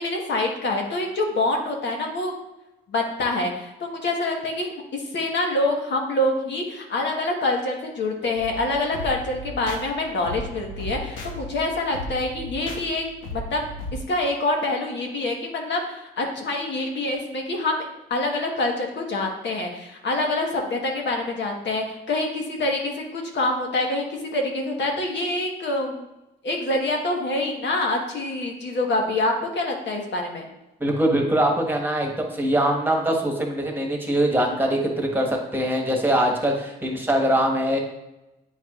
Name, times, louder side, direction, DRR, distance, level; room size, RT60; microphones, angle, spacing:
voice 1, 0.0-2.3 2.9-13.0 13.3-13.6 14.1-26.1 26.4-30.5, left 2 dB, 65° left, 1 dB, 1.3 m, -26 dB
sound 1, 8.4-14.0, left 1 dB, 80° left, 1.0 m, -36 dB
voice 2, 30.8-37.8, right 1 dB, 10° right, 1 dB, 1.4 m, -22 dB
8.5 x 4.7 x 2.4 m, 0.96 s
cardioid pair, 70°, 20 cm